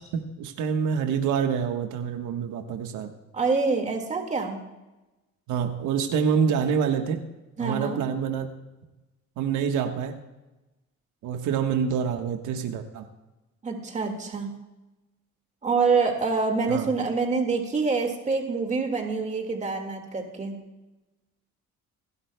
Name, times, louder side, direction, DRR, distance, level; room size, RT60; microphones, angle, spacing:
voice 1, 0.1-3.1 5.5-7.2 7.6-8.5 9.4-10.2 11.2-13.1 16.7-16.9, right 7 dB, 85° right, 5 dB, 1.3 m, -26 dB
voice 2, 3.3-4.6 7.6-8.0 13.6-14.5 15.6-20.6, right 4 dB, 25° right, 3 dB, 1.9 m, -26 dB
27.5 x 11.5 x 2.2 m, 1.1 s
cardioid pair, 145°, 30 cm